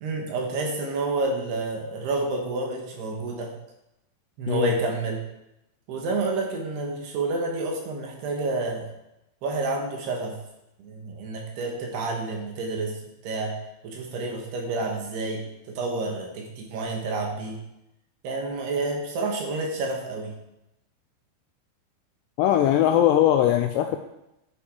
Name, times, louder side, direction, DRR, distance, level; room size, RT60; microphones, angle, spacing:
voice 1, 0.0-3.5 4.4-5.2 5.9-8.9 9.4-10.4 10.8-12.9 13.2-13.5 13.8-15.4 15.7-17.6 18.2-20.3, right 3 dB, 65° right, 0 dB, 3.3 m, -29 dB
voice 2, 22.4-24.0, left 11 dB, 85° left, 6 dB, 2.4 m, -20 dB
10.5 x 7.2 x 4.9 m, 0.88 s
omnidirectional pair, 5.4 m